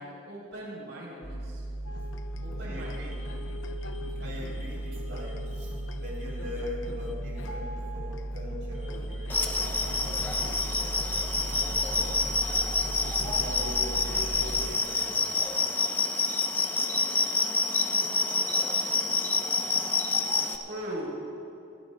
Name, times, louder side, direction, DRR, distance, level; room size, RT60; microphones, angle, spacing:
voice 1, 0.0-1.6 2.4-3.3 20.6-21.2, right 1 dB, 80° right, -4 dB, 3.3 m, -39 dB
sound 1, 1.2-14.7, right 1 dB, 65° left, 1.7 m, -36 dB
sound 2, 1.8-14.8, left 2 dB, 80° left, 0.7 m, -43 dB
voice 2, 2.6-3.2 4.2-12.3 13.2-15.8, left 1 dB, 65° right, -4 dB, 3.4 m, -43 dB
sound 3, 9.3-20.6, left 3 dB, 10° left, 0.6 m, -28 dB
23.0 x 15.5 x 2.2 m, 2.9 s
head